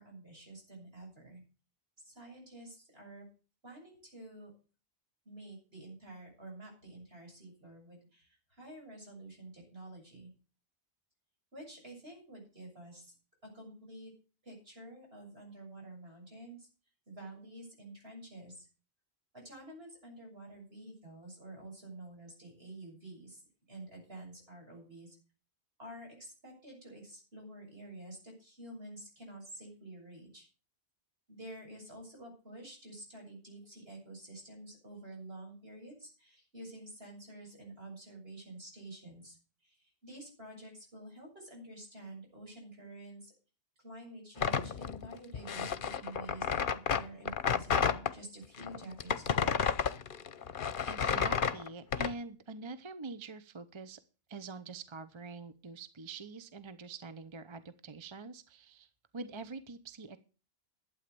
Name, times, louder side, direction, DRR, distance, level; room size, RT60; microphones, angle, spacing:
voice 1, 0.0-1.4 2.0-3.3 3.6-4.5 5.3-10.3 11.5-13.1 13.4-14.1 14.4-16.7 17.1-18.7 19.3-23.4 23.7-25.2 25.8-30.5 31.3-39.4 39.6-43.3 43.8-49.6, right 1 dB, 70° right, 0 dB, 7.4 m, -49 dB
sound 1, 44.4-48.1 48.6-52.1, left 7 dB, 55° left, 0.9 m, -31 dB
voice 2, 50.8-54.0 54.3-60.2, right 3 dB, 30° right, 11 dB, 0.8 m, -45 dB
12.0 x 8.7 x 6.8 m, 0.35 s
omnidirectional pair, 1.1 m